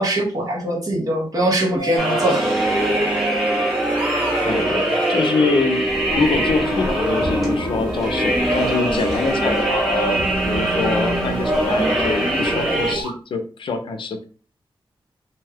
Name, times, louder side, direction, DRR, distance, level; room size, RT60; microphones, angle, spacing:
voice 1, 0.0-2.5, right 1 dB, 40° right, -2 dB, 1.0 m, -21 dB
sound 1, 1.8-13.1, right 1 dB, 75° right, 1.4 m, -28 dB
sound 2, 2.0-12.9, right 1 dB, ahead, 0.9 m, -23 dB
voice 2, 4.4-5.8 6.2-14.2, left 3 dB, 70° left, 6 dB, 0.5 m, -24 dB
sound 3, 5.8-13.0, right 1 dB, 20° right, 0.6 m, -32 dB
2.6 x 2.3 x 3.4 m, 0.39 s
wide cardioid pair, 175°, 9 cm